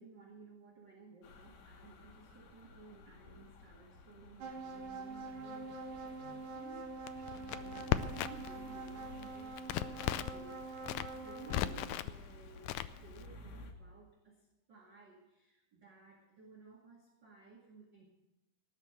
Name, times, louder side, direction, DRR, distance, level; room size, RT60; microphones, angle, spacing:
voice 1, 0.0-12.7 13.0-14.4 14.7-18.0, right 4 dB, 35° right, -3 dB, 2.3 m, -57 dB
sound 1, 1.2-13.7, left 3 dB, 65° left, 2.9 m, -55 dB
sound 2, 4.4-11.9, right 3 dB, 65° right, 3.0 m, -45 dB
Crackle, 7.1-8.5 8.8-10.4 10.8-12.1 12.6-13.2, left 13 dB, 90° left, 1.8 m, -36 dB
19.0 x 6.7 x 7.7 m, 0.93 s
omnidirectional pair, 4.3 m